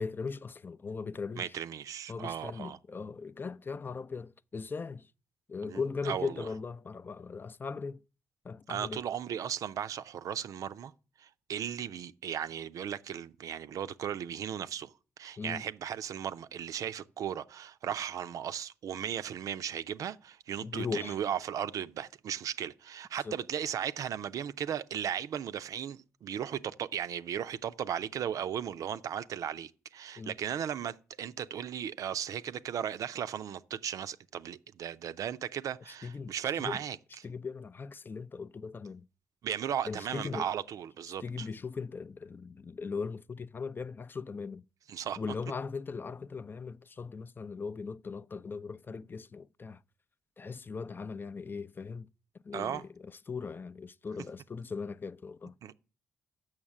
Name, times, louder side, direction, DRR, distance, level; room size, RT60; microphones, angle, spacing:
voice 1, 0.0-1.5 2.1-5.1 5.5-8.0 8.4-9.0 15.4-15.6 20.6-21.2 23.2-23.4 30.2-30.3 35.9-36.3 36.6-36.8 37.2-39.1 39.8-40.5 41.2-44.6 45.2-49.8 50.4-52.1 52.4-52.9 53.3-55.6, left 5 dB, 35° left, 0.4 m, -39 dB
voice 2, 1.4-2.8 5.6-6.4 8.7-10.9 11.2-14.9 15.2-37.0 39.4-41.5 44.9-45.2 52.5-52.8 55.6-55.7, right 9 dB, 60° right, 0.5 m, -36 dB
7.4 x 6.3 x 7.3 m
hypercardioid pair, 50°, 6 cm